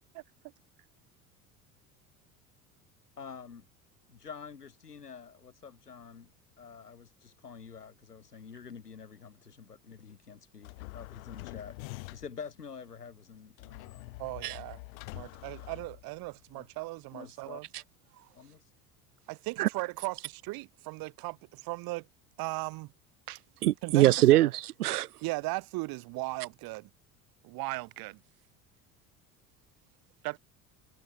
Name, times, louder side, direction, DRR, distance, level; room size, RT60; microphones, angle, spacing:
voice 1, 3.2-3.7 4.1-6.3 6.6-14.2 16.5-16.7 17.1-17.6 18.3-18.6, left 6 dB, 80° left, 4.8 m, -47 dB
sound 1, 10.6-12.5 13.6-16.4, left 24 dB, 60° left, 6.7 m, -45 dB
voice 2, 14.2-14.8 15.1-17.7 19.3-22.1 22.4-22.9 23.8-24.5 25.2-26.9 27.4-28.2 30.2-30.4, right 23 dB, 50° right, 1.8 m, -37 dB
voice 3, 23.3-25.1, right 15 dB, 75° right, 0.6 m, -24 dB
figure-of-eight pair, 65°, 46 cm